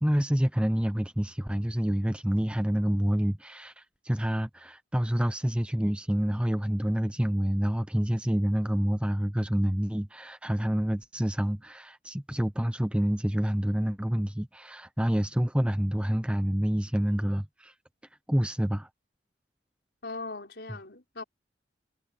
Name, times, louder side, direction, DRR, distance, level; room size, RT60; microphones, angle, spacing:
voice 1, 0.0-17.7 18.3-18.9, equal, 5° right, 0.7 m, -28 dB
voice 2, 20.0-21.2, left 3 dB, 60° left, 5.6 m, -39 dB
head